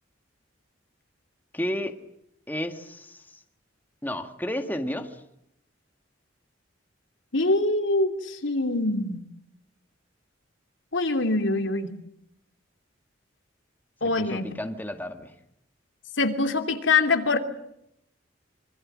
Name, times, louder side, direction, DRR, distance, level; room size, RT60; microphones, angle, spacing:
voice 1, 1.5-2.0 2.5-3.4 4.0-5.2 14.0-15.3, left 1 dB, 10° left, 6 dB, 1.8 m, -32 dB
voice 2, 7.3-9.2 10.9-11.9 14.0-14.5 16.2-17.4, left 3 dB, 75° left, 6 dB, 2.9 m, -24 dB
25.5 x 25.0 x 7.5 m, 0.77 s
head